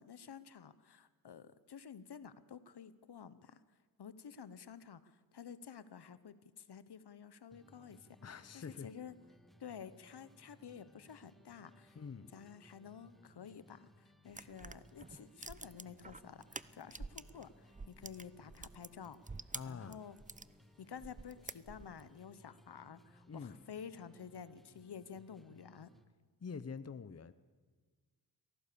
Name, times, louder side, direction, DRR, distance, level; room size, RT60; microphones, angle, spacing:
voice 1, 0.0-3.6 4.0-9.1 9.6-12.0 12.3-19.2 19.7-20.2 20.8-25.9, left 7 dB, 65° left, 1.1 m, -51 dB
sound 1, 7.5-26.1, equal, ahead, 1.5 m, -64 dB
voice 2, 8.2-8.9 11.9-12.3 19.5-20.0 23.3-23.6 26.4-27.3, left 5 dB, 35° left, 0.9 m, -45 dB
sound 2, 14.3-17.4 17.7-20.5 21.0-22.1, right 4 dB, 20° right, 0.6 m, -48 dB
23.5 x 17.5 x 6.9 m
cardioid pair, 75°, 43 cm